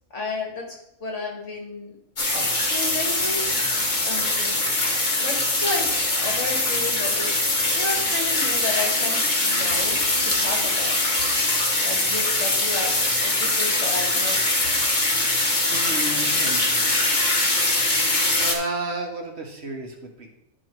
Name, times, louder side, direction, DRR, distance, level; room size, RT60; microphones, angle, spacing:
voice 1, 0.1-1.9 2.3-3.5 4.0-4.6 5.2-5.9 6.1-9.9 10.2-11.0 11.8-12.9 13.2-14.4, left 3 dB, 60° left, 0 dB, 2.1 m, -32 dB
sound 1, 2.2-18.6, left 2 dB, 35° left, 1.2 m, -22 dB
voice 2, 15.7-17.2 18.4-20.3, right 2 dB, 55° right, 2 dB, 1.3 m, -32 dB
9.9 x 4.7 x 4.5 m, 0.82 s
omnidirectional pair, 1.4 m